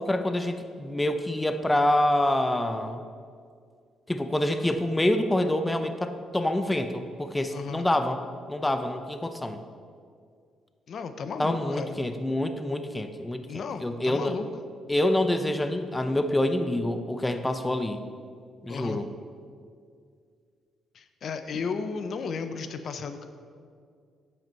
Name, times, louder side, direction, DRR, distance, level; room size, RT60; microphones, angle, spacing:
voice 1, 0.0-3.0 4.1-8.2 8.5-9.6 11.4-14.4 14.9-18.0 18.6-19.1, left 1 dB, 15° left, 8 dB, 0.6 m, -26 dB
voice 2, 7.5-7.9 10.9-12.0 13.4-14.5 18.7-19.0 20.9-23.3, left 5 dB, 60° left, 9 dB, 0.6 m, -34 dB
9.1 x 7.9 x 4.5 m, 2.2 s
cardioid pair, 90°, 0 cm